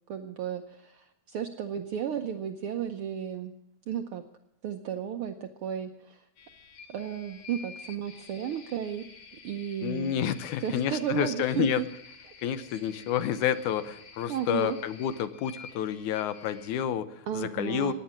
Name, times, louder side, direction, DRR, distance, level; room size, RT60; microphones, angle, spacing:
voice 1, 0.1-3.5 3.9-4.2 4.6-6.2 6.9-9.1 9.4-10.2 10.6-11.9 12.7-12.8 14.3-14.8 17.3-17.9, right 9 dB, 70° right, 7 dB, 1.3 m, -33 dB
sound 1, 6.4-16.8, left 5 dB, 55° left, 2.3 m, -50 dB
voice 2, 9.8-11.8 12.4-17.9, left 9 dB, 80° left, 13 dB, 2.3 m, -29 dB
17.0 x 10.0 x 7.3 m, 0.80 s
omnidirectional pair, 3.4 m